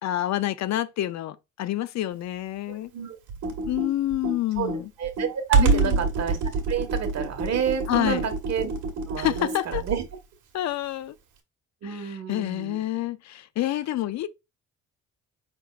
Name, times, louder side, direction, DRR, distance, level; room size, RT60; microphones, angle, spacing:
voice 1, 0.0-2.9 3.7-4.9 5.6-6.0 7.9-8.3 9.2-9.8 10.5-11.2 11.8-14.3, left 13 dB, 65° left, 0.5 m, -28 dB
voice 2, 2.7-3.2 4.6-4.7 5.0-6.4 6.7-8.7 9.1-10.0 11.8-12.8, right 7 dB, 60° right, 1.4 m, -29 dB
Computer keyboard, 3.3-10.1, right 4 dB, 80° right, 1.4 m, -27 dB
5.6 x 3.6 x 2.4 m
cardioid pair, 90°, 30 cm